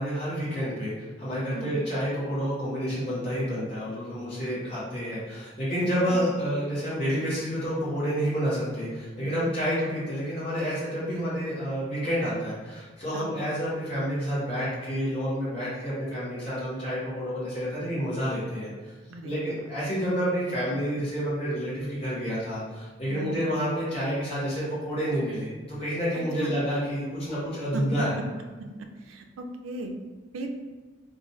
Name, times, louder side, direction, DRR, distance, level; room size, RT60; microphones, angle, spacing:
voice 1, 0.0-18.9 19.2-28.1, equal, 30° left, -10 dB, 1.2 m, -29 dB
voice 2, 9.2-9.8 13.1-13.3 19.1-19.6 23.1-23.5 26.1-26.5 27.7-27.8 28.6-29.9 30.3-30.5, right 2 dB, 85° right, 5 dB, 0.4 m, -38 dB
2.5 x 2.4 x 4.1 m, 1.3 s
head